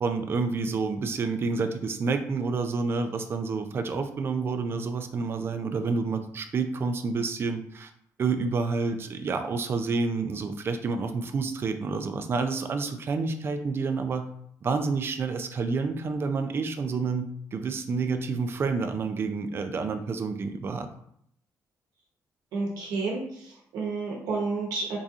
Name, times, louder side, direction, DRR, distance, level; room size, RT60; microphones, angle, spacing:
voice 1, 0.0-7.9 8.2-14.3 14.6-20.9, right 4 dB, 40° right, 7 dB, 0.4 m, -29 dB
voice 2, 22.5-25.0, right 3 dB, 85° right, -3 dB, 1.0 m, -31 dB
4.7 x 2.7 x 2.5 m, 0.68 s
cardioid pair, 130°, 6 cm